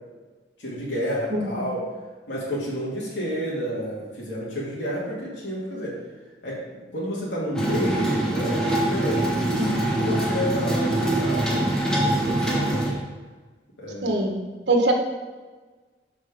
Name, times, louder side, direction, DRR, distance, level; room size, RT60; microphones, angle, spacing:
voice 1, 0.6-1.9 2.3-6.0 6.4-12.9 13.8-14.2, equal, 80° left, -6 dB, 2.4 m, -30 dB
San Francisco - Cablecar - Cable rail Close-up, 7.5-12.9, right 1 dB, 5° left, 1.2 m, -24 dB
voice 2, 14.0-14.4 14.7-14.9, right 2 dB, 80° right, 3 dB, 1.2 m, -22 dB
6.6 x 5.1 x 5.1 m, 1.3 s
head